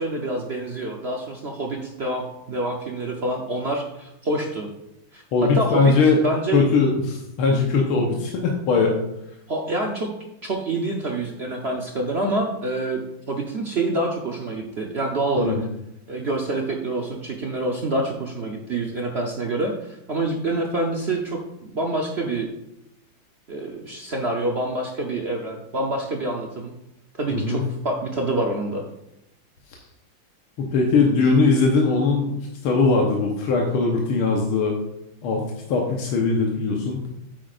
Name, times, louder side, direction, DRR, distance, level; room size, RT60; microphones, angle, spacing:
voice 1, 0.0-4.7 5.1-5.9 6.2-6.6 9.5-10.1 10.4-13.0 13.3-15.6 16.1-22.5 23.5-26.7 27.2-28.8, right 2 dB, 65° right, 1 dB, 0.6 m, -27 dB
voice 2, 5.3-6.2 6.5-9.0 15.4-15.6 27.3-27.6 30.6-34.8 35.2-37.0, left 4 dB, 85° left, 0 dB, 1.9 m, -20 dB
9.3 x 8.7 x 2.5 m, 0.86 s
omnidirectional pair, 2.3 m